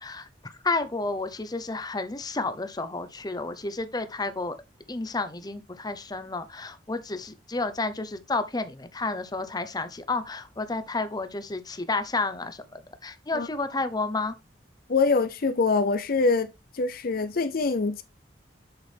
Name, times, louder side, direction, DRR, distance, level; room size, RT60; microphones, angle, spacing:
voice 1, 0.6-4.6 4.9-14.3, left 3 dB, 20° left, 0.9 m, -31 dB
voice 2, 14.9-18.0, left 4 dB, 55° left, 0.6 m, -24 dB
8.0 x 6.2 x 3.4 m
head